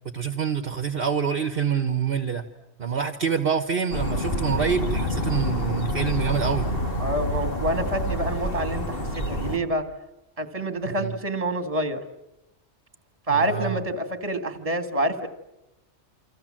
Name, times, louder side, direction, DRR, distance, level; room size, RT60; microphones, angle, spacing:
voice 1, 0.1-2.4 2.8-6.7 10.8-11.1 13.3-13.8, right 6 dB, 55° right, 9 dB, 1.3 m, -26 dB
sound 1, 3.9-9.6, left 1 dB, 55° left, 2.5 m, -27 dB
voice 2, 7.0-9.9 10.4-12.0 13.3-15.3, right 1 dB, 30° right, 9 dB, 1.9 m, -27 dB
28.5 x 25.5 x 7.6 m, 0.94 s
omnidirectional pair, 1.2 m